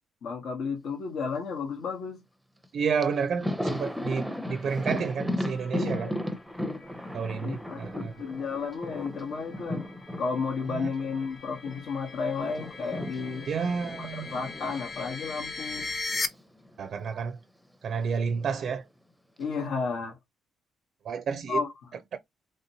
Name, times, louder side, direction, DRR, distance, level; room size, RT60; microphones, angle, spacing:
voice 1, 0.2-2.2 5.8-6.3 7.4-9.8 10.2-13.5 14.0-15.9 19.4-20.2 21.5-21.7, left 5 dB, 75° left, 0.9 m, -33 dB
Thunder, 2.6-2.7 3.0-11.8 12.1-16.4 16.7-16.8 18.0-18.7, left 1 dB, ahead, 0.6 m, -36 dB
voice 2, 2.7-6.1 7.1-8.1 10.7-10.9 13.5-14.3 16.8-17.4 17.8-18.8 21.0-21.6, right 6 dB, 60° right, 0.4 m, -30 dB
sound 1, 5.3-16.3, left 3 dB, 40° left, 0.7 m, -41 dB
3.2 x 2.8 x 2.7 m
cardioid pair, 90°, 0 cm